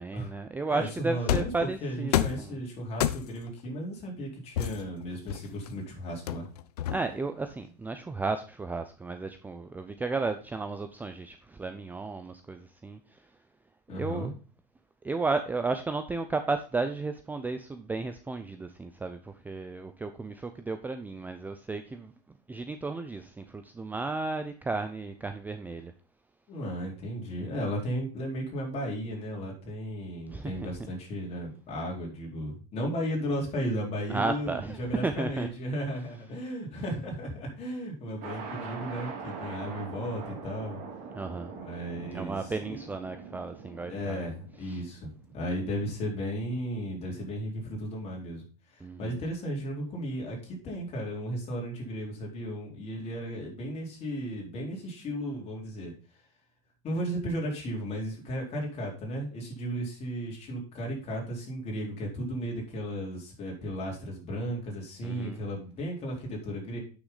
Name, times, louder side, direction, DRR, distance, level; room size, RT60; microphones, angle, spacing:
voice 1, 0.0-2.6 6.9-13.2 13.9-14.3 15.0-22.1 22.5-25.9 30.3-30.7 34.1-35.5 41.2-41.5 42.1-44.3 44.7-44.8 48.8-49.2 65.0-65.4, right 3 dB, 10° right, 0.6 m, -33 dB
voice 2, 0.7-1.5 1.8-6.5 13.9-14.3 26.5-40.8 41.5-42.8 43.9-56.2 56.8-66.8, equal, 30° left, 4.2 m, -35 dB
sound 1, 1.3-1.6 2.1-2.5 3.0-3.5 4.6-5.7 6.3-7.3, left 11 dB, 85° left, 0.7 m, -29 dB
sound 2, 38.2-45.8, right 5 dB, 45° right, 3.2 m, -43 dB
9.4 x 6.4 x 4.0 m
supercardioid pair, 130°, 20 cm